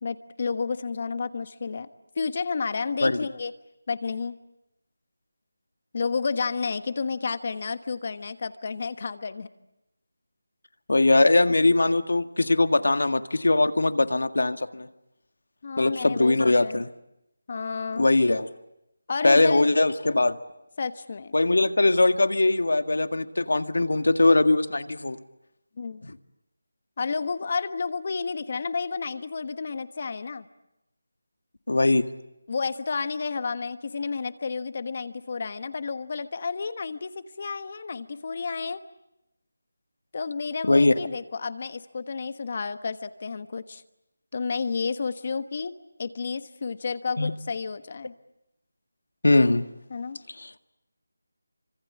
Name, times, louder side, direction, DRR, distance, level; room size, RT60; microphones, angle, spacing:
voice 1, 0.0-1.9 2.1-3.5 3.9-4.4 5.9-9.5 11.6-11.7 15.6-16.8 17.5-18.1 19.1-19.8 20.8-21.3 25.8-26.1 27.0-30.5 32.5-38.8 40.1-43.8 44.3-45.7 46.0-48.1 49.9-50.2, left 5 dB, 35° left, 12 dB, 1.3 m, -31 dB
voice 2, 10.9-14.9 15.8-16.9 18.0-18.5 19.2-20.4 21.3-25.2 26.0-26.1 31.7-32.1 40.6-40.9 47.2-47.3 49.2-49.6 50.4-50.5, left 2 dB, 80° left, 10 dB, 1.8 m, -21 dB
27.0 x 25.5 x 8.7 m, 0.87 s
figure-of-eight pair, 175°, 0 cm